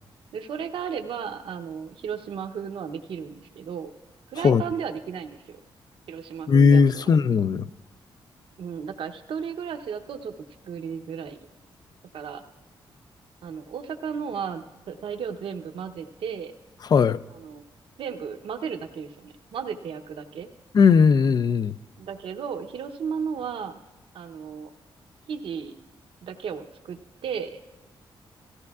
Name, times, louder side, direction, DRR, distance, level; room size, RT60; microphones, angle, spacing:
voice 1, 0.3-3.9 4.3-5.6 6.1-7.1 8.6-10.3 10.6-11.4 12.1-12.4 13.4-16.5 17.3-17.6 18.0-20.5 22.0-23.8 24.1-24.7 25.3-25.7 26.2-27.0 27.2-27.6, right 7 dB, 75° right, 7 dB, 0.7 m, -34 dB
voice 2, 6.5-7.7 16.9-17.2 20.7-21.7, left 5 dB, 50° left, 15 dB, 0.3 m, -18 dB
17.0 x 14.5 x 2.4 m, 1.1 s
cardioid pair, 90°, 9 cm